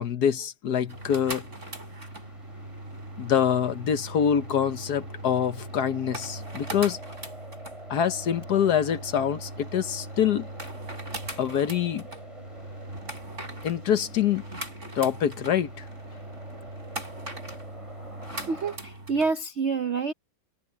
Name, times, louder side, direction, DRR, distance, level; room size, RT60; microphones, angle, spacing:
voice 1, 0.0-1.4 3.2-7.0 7.9-10.5 11.4-12.0 13.6-14.4 14.9-15.7, left 8 dB, 60° left, 1.3 m, -25 dB
sound 1, 0.8-19.3, right 1 dB, 35° right, 6.4 m, -40 dB
sound 2, 0.9-18.8, right 1 dB, 15° right, 6.9 m, -49 dB
voice 2, 18.2-20.1, right 4 dB, 60° right, 0.7 m, -28 dB
omnidirectional pair, 2.2 m